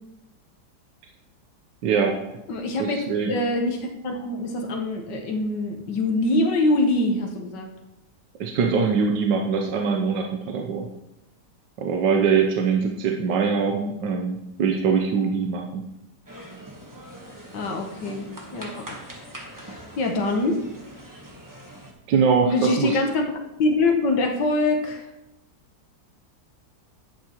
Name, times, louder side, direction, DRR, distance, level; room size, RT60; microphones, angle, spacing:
voice 1, 1.8-2.4 2.8-3.4 8.4-10.9 11.8-15.8 22.1-23.0, right 5 dB, 90° right, 2 dB, 1.5 m, -23 dB
voice 2, 2.5-7.7 17.5-19.0 19.5-20.6 22.4-23.3 23.6-25.1, left 2 dB, 85° left, 3 dB, 1.8 m, -24 dB
sound 1, 16.3-21.9, right 1 dB, 15° right, 1.1 m, -42 dB
11.5 x 8.4 x 3.0 m, 0.90 s
omnidirectional pair, 1.8 m